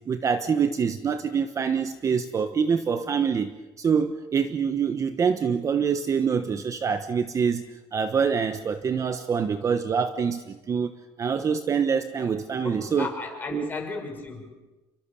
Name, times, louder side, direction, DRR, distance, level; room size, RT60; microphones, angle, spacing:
voice 1, 0.1-3.5 3.8-10.9 11.2-13.1 13.5-13.7, right 6 dB, 30° right, 10 dB, 1.1 m, -25 dB
voice 2, 12.6-14.5, left 3 dB, 15° left, 2 dB, 6.2 m, -35 dB
29.5 x 23.0 x 7.2 m, 1.1 s
cardioid pair, 145°, 11 cm